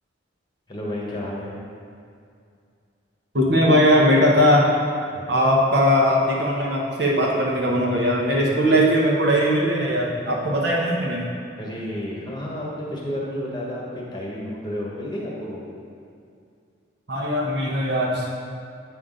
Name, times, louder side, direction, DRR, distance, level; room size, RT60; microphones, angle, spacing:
voice 1, 0.7-1.6 5.1-5.3 11.6-15.6, left 1 dB, 20° left, -4 dB, 1.1 m, -31 dB
voice 2, 3.3-4.7 5.3-11.3 17.1-18.3, equal, 55° right, -3 dB, 1.1 m, -19 dB
8.3 x 5.8 x 3.8 m, 2.4 s
head